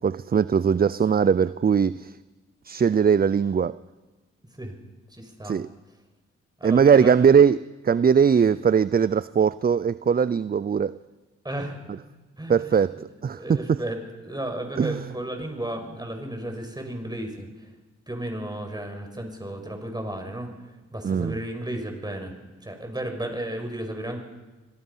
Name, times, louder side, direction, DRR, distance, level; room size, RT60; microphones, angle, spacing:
voice 1, 0.0-2.1 2.6-3.8 5.4-5.7 6.6-10.9 12.5-13.0 13.2-13.8 14.8-15.0 21.0-21.4, right 7 dB, 30° right, 17 dB, 0.5 m, -20 dB
voice 2, 5.1-5.6 6.6-7.1 8.3-8.5 11.4-12.0 12.4-12.7 13.4-17.5 18.1-20.5 20.9-22.3 22.6-24.2, right 1 dB, 15° right, 4 dB, 6.2 m, -33 dB
26.0 x 17.5 x 5.7 m, 1.2 s
supercardioid pair, 50°, 29 cm